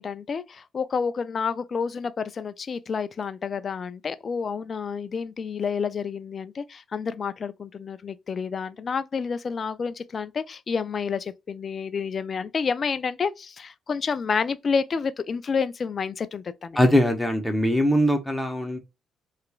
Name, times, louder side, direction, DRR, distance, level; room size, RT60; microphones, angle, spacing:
voice 1, 0.0-16.8, left 5 dB, 50° left, 0.3 m, -29 dB
voice 2, 16.8-18.8, equal, 5° left, 0.9 m, -21 dB
2.8 x 2.4 x 2.3 m
hypercardioid pair, 55°, 0 cm